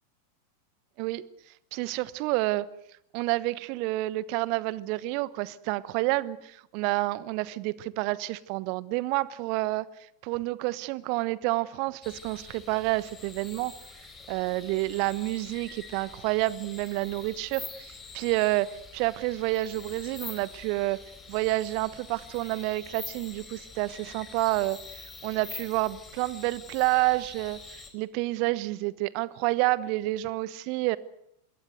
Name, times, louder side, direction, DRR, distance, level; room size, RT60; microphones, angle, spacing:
voice 1, 1.7-2.6 3.1-9.9 10.2-13.7 14.3-18.7 18.9-21.0 21.3-31.0, right 19 dB, 45° right, 18 dB, 1.2 m, -29 dB
sound 1, 12.0-27.9, left 4 dB, 15° left, 5.2 m, -45 dB
26.0 x 22.0 x 8.0 m, 0.77 s
figure-of-eight pair, 90°, 0 cm